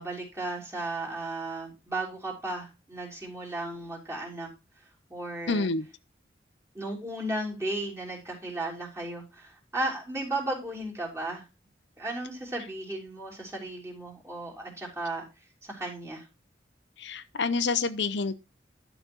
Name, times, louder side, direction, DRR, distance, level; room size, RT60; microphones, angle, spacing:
voice 1, 0.0-4.5 5.1-5.7 6.7-11.4 12.0-15.2 15.6-16.2, right 2 dB, 15° right, 3.4 m, -35 dB
voice 2, 5.5-5.9 17.0-18.3, left 4 dB, 75° left, 0.7 m, -28 dB
12.0 x 4.1 x 6.1 m
head